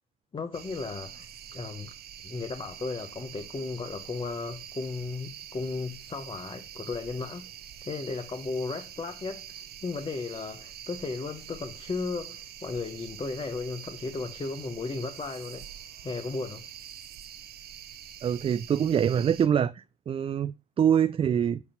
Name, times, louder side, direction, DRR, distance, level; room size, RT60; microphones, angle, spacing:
voice 1, 0.3-1.9 2.2-7.5 7.8-15.7 16.0-16.6, left 4 dB, 25° left, 0.9 m, -35 dB
sound 1, 0.5-19.5, right 9 dB, 55° right, 0.7 m, -45 dB
voice 2, 18.2-21.6, right 8 dB, 30° right, 0.3 m, -25 dB
8.1 x 2.9 x 5.7 m
hypercardioid pair, 60°, 19 cm